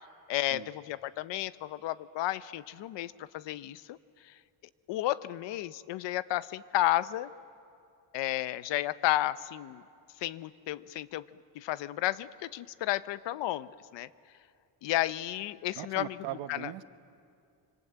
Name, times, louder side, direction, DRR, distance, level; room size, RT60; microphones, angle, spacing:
voice 1, 0.3-4.0 4.2-4.3 4.9-7.3 8.1-9.8 10.2-11.2 11.5-14.1 14.8-16.2 16.5-16.7, left 15 dB, 80° left, 15 dB, 0.8 m, -32 dB
voice 2, 15.7-16.8, right 13 dB, 80° right, 11 dB, 1.1 m, -39 dB
26.0 x 25.0 x 8.0 m, 2.5 s
cardioid pair, 175°, 43 cm